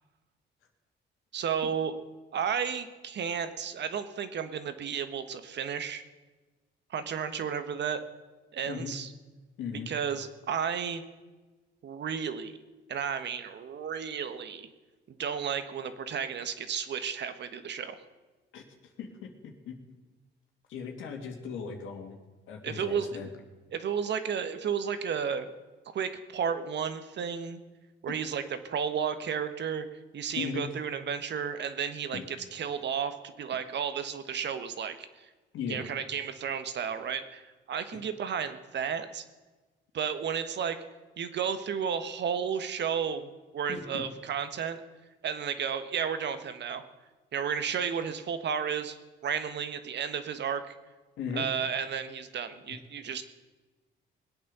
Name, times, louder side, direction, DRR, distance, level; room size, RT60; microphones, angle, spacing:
voice 1, 1.3-2.0 2.3-6.0 6.9-8.0 8.5-9.1 9.9-11.0 11.8-12.6 12.9-14.7 15.1-18.0 22.6-23.1 23.7-25.5 25.9-27.6 28.0-29.9 30.1-35.3 35.7-39.2 39.9-40.8 41.2-44.8 45.2-46.8 47.3-49.0 49.2-50.8 51.3-53.2, right 7 dB, 60° right, 10 dB, 1.4 m, -33 dB
voice 2, 9.6-9.9 18.5-18.6 19.0-19.7 20.7-22.2 22.5-23.3 30.3-30.7 32.1-32.2 35.5-35.8 43.7-44.0 51.2-51.5, left 6 dB, 85° left, 2 dB, 2.6 m, -37 dB
21.0 x 8.7 x 6.8 m, 1.3 s
cardioid pair, 90°, 20 cm